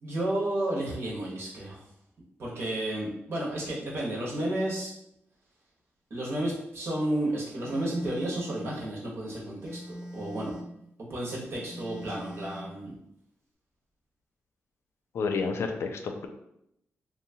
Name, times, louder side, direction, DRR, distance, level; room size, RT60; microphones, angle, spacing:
voice 1, 0.0-1.8 2.4-4.9 6.1-10.6 11.0-13.0, right 1 dB, 60° right, -4 dB, 0.9 m, -32 dB
Telephone, 7.6-8.7 9.6-10.8 11.6-12.8, equal, 5° right, 0.7 m, -42 dB
voice 2, 15.1-16.3, left 4 dB, 75° left, 5 dB, 0.4 m, -30 dB
2.8 x 2.2 x 2.7 m, 0.79 s
cardioid pair, 85°, 5 cm